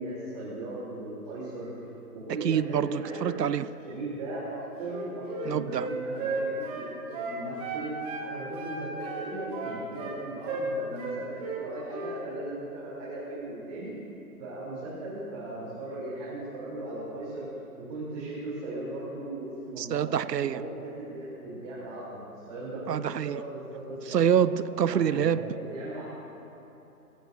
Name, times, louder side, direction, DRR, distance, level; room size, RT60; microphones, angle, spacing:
voice 1, 0.0-1.7 2.1-3.4 3.8-7.9 8.2-13.9 14.4-17.5 17.8-24.2 24.8-26.0, right 2 dB, 25° right, 3.2 m, -37 dB
voice 2, 2.4-3.7 5.5-5.9 19.8-20.6 22.9-23.4 24.1-25.6, right 9 dB, 90° right, 0.6 m, -26 dB
Wind instrument woodwind instrument, 4.8-8.3 8.5-10.2 10.5-10.7 11.0-11.6 11.9-12.1, right 3 dB, 10° right, 1.2 m, -34 dB
23.5 x 15.0 x 2.6 m
figure-of-eight pair, 145°, 47 cm